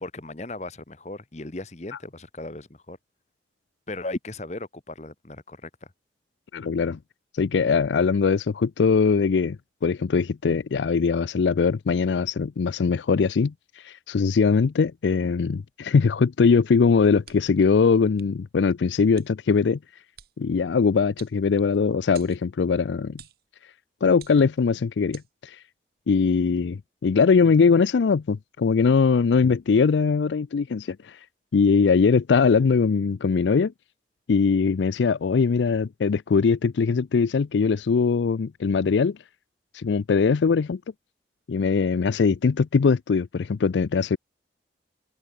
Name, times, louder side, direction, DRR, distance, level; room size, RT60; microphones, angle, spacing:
voice 1, 0.0-3.0 3.9-5.7, left 2 dB, 40° left, 1.1 m, -36 dB
voice 2, 6.5-7.0 7.4-9.6 9.8-13.5 13.8-19.8 20.4-23.2 24.0-25.6 26.1-31.2 31.5-33.7 34.3-39.2 39.7-40.8 41.5-44.2, left 5 dB, 85° left, 0.4 m, -21 dB
sound 1, 17.2-17.6 18.1-18.3 19.1-19.3 20.1-20.3 21.2-21.8 22.1-22.4 23.2-23.4 24.1-24.6 25.1-25.3, right 10 dB, 55° right, 4.0 m, -48 dB
head